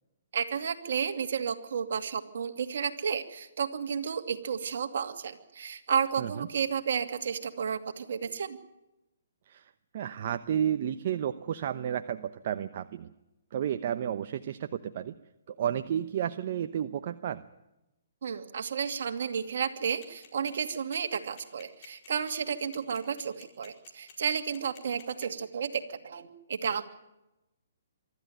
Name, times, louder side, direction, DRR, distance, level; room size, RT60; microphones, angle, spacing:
voice 1, 0.3-8.6 18.2-26.9, right 7 dB, 65° right, 6 dB, 2.4 m, -32 dB
voice 2, 9.5-13.1 13.5-15.1 15.5-17.4, right 9 dB, 50° right, 9 dB, 0.9 m, -32 dB
sound 1, 20.0-25.2, left 7 dB, 35° left, 4.7 m, -51 dB
24.5 x 13.5 x 9.3 m, 0.95 s
hypercardioid pair, 150°, 0 cm